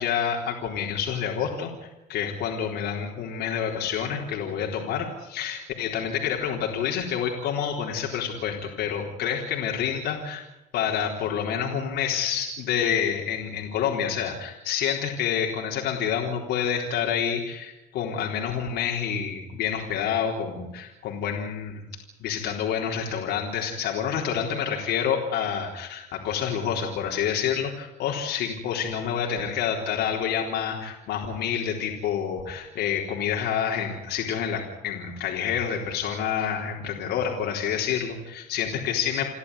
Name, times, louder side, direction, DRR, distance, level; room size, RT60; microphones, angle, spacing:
voice 1, 0.0-10.4 10.7-39.3, left 8 dB, 80° left, 0 dB, 4.0 m, -28 dB
29.5 x 12.5 x 9.9 m, 0.97 s
cardioid pair, 110°, 17 cm